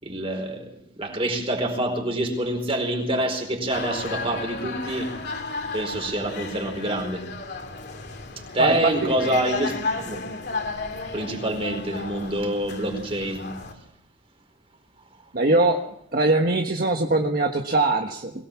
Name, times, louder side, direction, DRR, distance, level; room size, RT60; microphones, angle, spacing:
voice 1, 0.0-0.7 1.0-5.1 5.7-7.2 8.5-10.2 11.1-13.5, right 1 dB, 30° right, 4.6 m, -26 dB
sound 1, 3.7-13.7, left 3 dB, 65° left, 3.0 m, -34 dB
voice 2, 15.3-15.8 16.1-18.3, right 2 dB, 55° right, 1.5 m, -21 dB
22.5 x 18.0 x 7.3 m
head